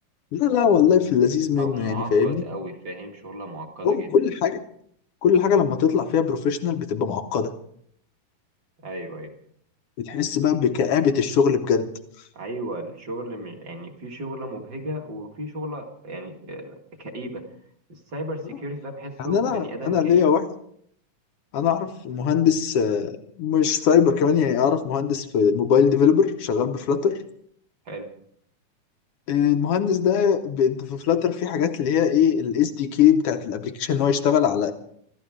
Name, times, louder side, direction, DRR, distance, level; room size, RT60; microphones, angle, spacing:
voice 1, 0.3-2.4 3.8-4.6 5.2-7.5 10.0-11.9 19.2-20.4 21.5-27.2 29.3-34.7, left 7 dB, 70° left, 7 dB, 1.4 m, -21 dB
voice 2, 1.6-4.2 8.8-9.3 12.3-17.5 17.9-20.3 27.9-28.1, right 1 dB, 35° right, 2 dB, 2.2 m, -35 dB
25.5 x 13.0 x 3.6 m, 0.66 s
omnidirectional pair, 3.5 m